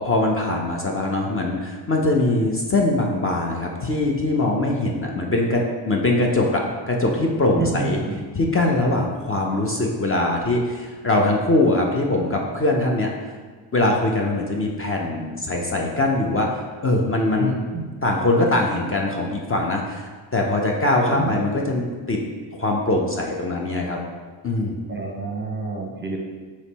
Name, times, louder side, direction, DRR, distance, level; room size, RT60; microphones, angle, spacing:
voice 1, 0.0-8.0 8.3-13.1 13.7-17.6 18.0-22.2 22.6-24.0 24.4-24.8, left 2 dB, 25° left, 0 dB, 0.6 m, -22 dB
voice 2, 7.6-8.2 17.4-17.9 21.1-21.4 24.9-26.2, right 4 dB, 25° right, 1 dB, 0.7 m, -28 dB
4.2 x 3.0 x 4.1 m, 1.4 s
supercardioid pair, 75°, 49 cm